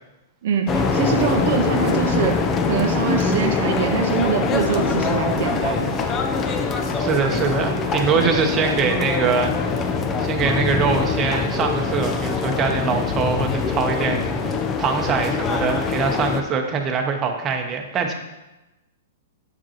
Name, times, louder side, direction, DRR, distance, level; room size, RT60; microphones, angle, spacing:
voice 1, 0.4-6.0 8.1-8.4, right 6 dB, 65° right, 5 dB, 0.6 m, -24 dB
sound 1, 0.7-16.4, left 4 dB, 25° left, 0.6 m, -23 dB
voice 2, 7.0-9.7 10.2-18.1, right 5 dB, 25° right, 3 dB, 0.9 m, -23 dB
7.5 x 6.0 x 2.9 m, 1.0 s
hypercardioid pair, 120°, 0 cm